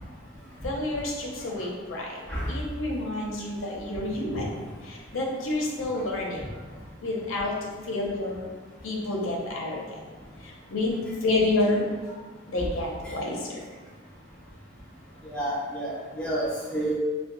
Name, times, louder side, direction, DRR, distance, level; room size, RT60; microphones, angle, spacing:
voice 1, 0.6-2.2 2.5-4.5 4.8-6.5 7.0-7.6 7.8-8.5 8.8-9.8 10.4-11.8 12.5-13.6, left 2 dB, 80° left, -2 dB, 0.7 m, -29 dB
voice 2, 15.3-16.9, right 1 dB, 5° left, -8 dB, 0.7 m, -29 dB
3.9 x 2.2 x 2.6 m, 1.4 s
head